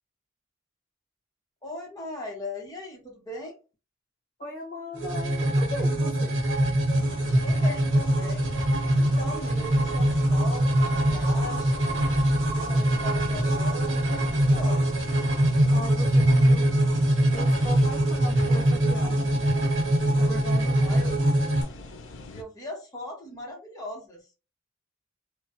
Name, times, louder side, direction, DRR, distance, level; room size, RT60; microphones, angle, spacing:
voice 1, 1.6-3.6 7.4-8.5 8.9-12.0 12.5-15.0 20.8-21.2 22.3-24.2, left 1 dB, 20° left, -1 dB, 0.9 m, -39 dB
voice 2, 4.4-6.4 15.7-16.7 17.3-19.4 20.2-21.0, equal, 45° left, -1 dB, 1.4 m, -38 dB
sound 1, 5.0-21.6, right 1 dB, 85° right, 1.0 m, -23 dB
sound 2, 6.9-22.4, left 3 dB, 85° left, 0.5 m, -43 dB
3.0 x 2.1 x 2.8 m, 0.32 s
head